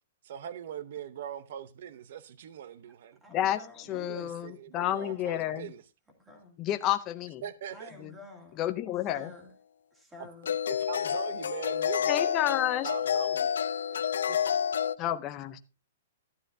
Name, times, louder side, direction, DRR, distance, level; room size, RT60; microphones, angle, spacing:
voice 1, 0.2-3.2 3.9-5.8 7.4-7.9 10.7-12.4 12.8-13.5 13.9-14.0 14.3-14.4, right 9 dB, 50° right, 0.7 m, -41 dB
voice 2, 3.2-4.3 4.7-5.3 6.2-6.6 7.7-8.7 9.1-9.5 9.9-10.6, left 2 dB, 5° right, 1.9 m, -51 dB
voice 3, 3.9-5.7 6.6-7.4 8.0-8.1 8.6-9.3 12.1-12.9 15.0-15.6, left 12 dB, 20° left, 0.5 m, -30 dB
sound 1, 9.1-9.2 10.4-15.0, left 8 dB, 80° left, 0.5 m, -29 dB
12.5 x 9.9 x 2.7 m
hypercardioid pair, 175°, 0 cm